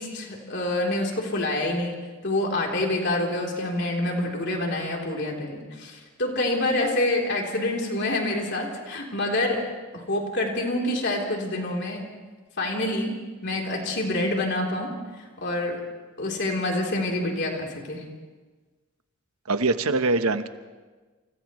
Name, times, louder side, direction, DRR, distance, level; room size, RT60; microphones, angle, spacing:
voice 1, 0.0-2.0 2.2-9.6 9.9-12.0 12.6-13.2 13.4-14.9 15.2-15.8 16.2-18.0, left 1 dB, 55° left, -1 dB, 3.6 m, -27 dB
voice 2, 19.5-20.5, right 3 dB, 90° right, 9 dB, 1.1 m, -23 dB
29.0 x 28.0 x 3.2 m, 1.3 s
head